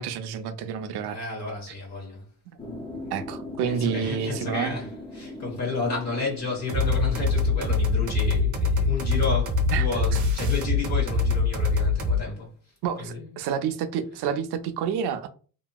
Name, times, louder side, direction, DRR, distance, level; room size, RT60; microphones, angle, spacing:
voice 1, 0.0-1.2 3.1-4.7 9.7-10.2 12.8-15.3, right 7 dB, 75° right, 0.5 m, -29 dB
voice 2, 1.0-2.2 3.7-4.9 5.1-12.5 13.0-13.3, left 3 dB, 40° left, 1.1 m, -31 dB
sound 1, 2.6-7.6, left 2 dB, 15° left, 0.4 m, -39 dB
sound 2, 6.7-12.2, left 3 dB, 50° right, 0.7 m, -23 dB
2.8 x 2.7 x 2.2 m
cardioid pair, 130°, 40 cm